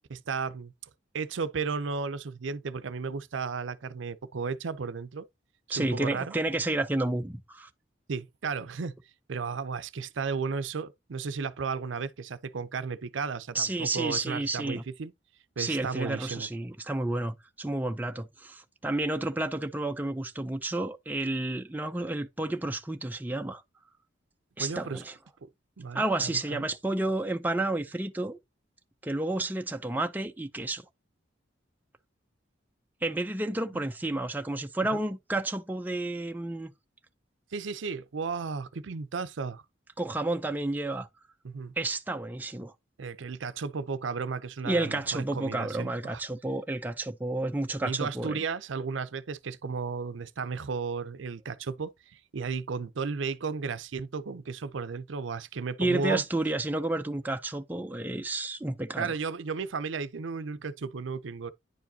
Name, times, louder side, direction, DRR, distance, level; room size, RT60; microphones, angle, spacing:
voice 1, 0.1-0.7 1.1-5.3 5.7-6.3 8.1-9.0 9.3-15.1 15.6-16.5 24.6-25.0 25.8-26.7 33.7-33.8 34.9-35.0 37.5-39.6 41.4-41.7 43.0-46.2 47.8-56.2 59.0-61.5, right 5 dB, 75° right, 0.5 m, -34 dB
voice 2, 5.7-7.7 13.5-14.8 15.6-23.6 24.6-25.1 25.9-28.4 29.0-30.8 33.0-36.7 40.0-41.1 41.8-42.7 44.6-48.4 55.8-59.1, right 2 dB, 10° right, 0.4 m, -31 dB
9.8 x 4.8 x 2.7 m
head